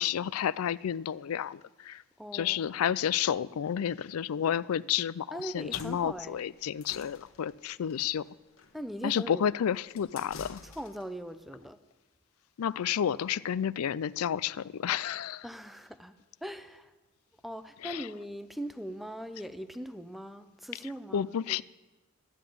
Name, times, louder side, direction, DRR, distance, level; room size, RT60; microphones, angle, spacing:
voice 1, 0.0-2.0 2.3-8.2 9.0-10.6 12.6-15.4 17.8-18.1 21.1-21.6, left 9 dB, 85° left, 20 dB, 0.4 m, -31 dB
voice 2, 2.2-2.7 5.3-6.4 8.7-9.5 10.6-11.8 15.4-16.1 16.4-16.9 17.4-21.6, equal, ahead, 11 dB, 0.6 m, -40 dB
sound 1, 5.5-11.2, left 4 dB, 70° left, 1.2 m, -49 dB
12.5 x 8.9 x 9.3 m, 1.2 s
head